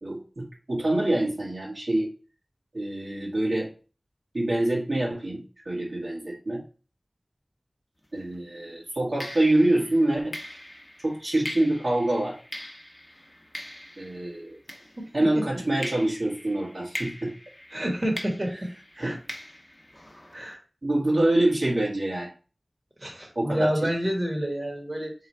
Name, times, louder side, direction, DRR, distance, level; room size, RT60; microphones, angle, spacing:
voice 1, 0.0-2.1 2.7-3.7 4.3-6.6 8.1-10.3 11.0-12.4 14.0-14.6 15.1-17.3 19.0-19.1 20.8-22.3 23.3-23.9, right 1 dB, 75° right, -4 dB, 1.4 m, -25 dB
sound 1, 8.0-8.3 9.2-15.4 15.8-20.5, left 1 dB, 20° left, 0.9 m, -41 dB
voice 2, 17.7-18.7 18.9-19.2 20.3-20.6 23.0-25.1, equal, 40° right, -1 dB, 1.3 m, -28 dB
3.9 x 3.1 x 4.2 m, 0.36 s
wide cardioid pair, 45°, 0 cm